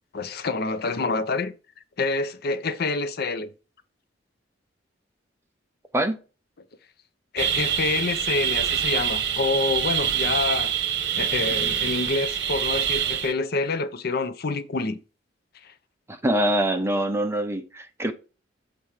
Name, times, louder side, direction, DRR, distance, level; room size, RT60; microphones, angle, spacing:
voice 1, 0.1-1.5 2.0-3.5 7.3-10.7 11.1-15.0 15.6-15.7, left 3 dB, 55° left, 0.6 m, -27 dB
sound 1, 7.4-13.3, right 9 dB, 65° right, 1.1 m, -25 dB
voice 2, 16.1-18.1, right 1 dB, 15° right, 0.8 m, -24 dB
7.2 x 4.5 x 4.8 m
head